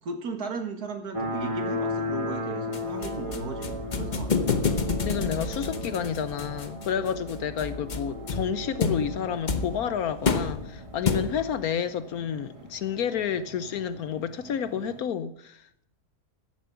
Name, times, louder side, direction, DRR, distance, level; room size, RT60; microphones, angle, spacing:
voice 1, 0.0-4.4, right 4 dB, 70° right, 2.2 m, -36 dB
sound 1, 1.1-15.0, left 2 dB, 20° right, 1.5 m, -37 dB
sound 2, 2.7-11.6, left 4 dB, 35° left, 0.9 m, -30 dB
voice 2, 5.0-15.8, left 8 dB, 70° left, 1.1 m, -30 dB
14.5 x 7.5 x 7.0 m
omnidirectional pair, 1.7 m